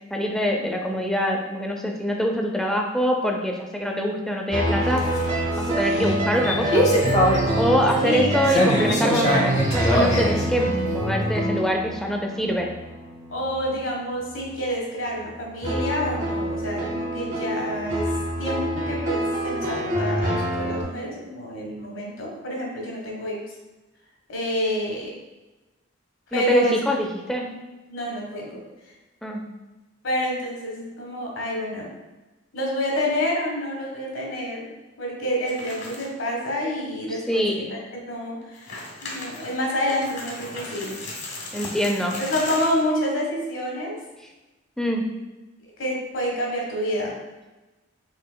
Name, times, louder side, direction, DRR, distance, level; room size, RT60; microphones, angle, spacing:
voice 1, 0.1-5.1 5.6-6.9 7.6-12.7 26.3-27.5 29.2-29.5 37.3-37.7 41.5-42.2 44.8-45.1, equal, 5° left, 1 dB, 0.4 m, -24 dB
sound 1, 4.5-14.8 15.1-20.8, right 1 dB, 40° right, 0.8 m, -27 dB
sound 2, 4.8-11.6, equal, 35° left, 0.8 m, -23 dB
voice 2, 8.0-8.3 13.3-18.1 18.4-23.4 24.3-25.1 26.3-26.8 27.5-27.6 27.9-28.9 30.0-31.9 32.5-34.7 35.0-37.4 37.7-40.9 42.2-43.9 45.8-47.1, equal, 80° left, -2 dB, 1.3 m, -28 dB
sound 3, 35.5-36.2 36.6-36.7 37.3-37.4 38.4-42.9, left 2 dB, 60° left, 1.1 m, -37 dB
5.6 x 4.1 x 2.2 m, 1.1 s
head